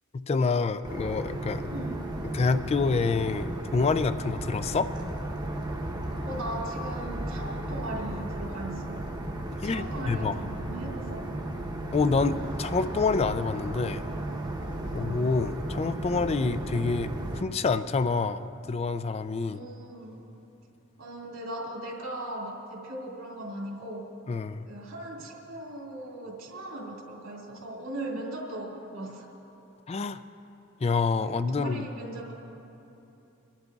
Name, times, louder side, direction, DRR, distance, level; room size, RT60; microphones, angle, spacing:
voice 1, 0.1-1.6 2.3-4.9 9.6-10.4 11.9-14.0 14.9-19.6 24.3-24.7 29.9-30.2 30.8-31.9, left 4 dB, 30° left, 12 dB, 0.3 m, -27 dB
sound 1, 0.8-17.4, right 1 dB, 20° right, 0.9 m, -35 dB
voice 2, 1.7-2.1 6.2-9.0 9.5-11.2 14.9-15.2 19.5-20.3 21.0-24.1 24.7-29.3 31.2-32.3, right 1 dB, 80° right, -3 dB, 2.5 m, -38 dB
28.0 x 11.5 x 2.4 m, 3.0 s
head